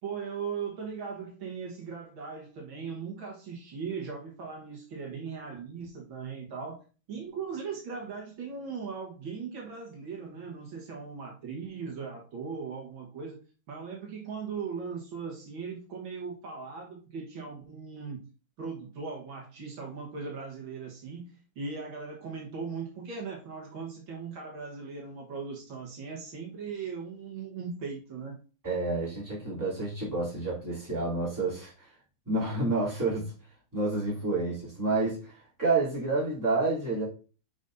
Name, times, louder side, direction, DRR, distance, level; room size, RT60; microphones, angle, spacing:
voice 1, 0.0-6.8 7.1-13.4 13.7-18.3 18.6-28.4, right 5 dB, 70° right, 2.2 m, -38 dB
voice 2, 28.6-31.9 32.3-33.3 33.7-37.1, right 3 dB, 10° right, 3.2 m, -29 dB
9.6 x 5.2 x 2.7 m
omnidirectional pair, 2.3 m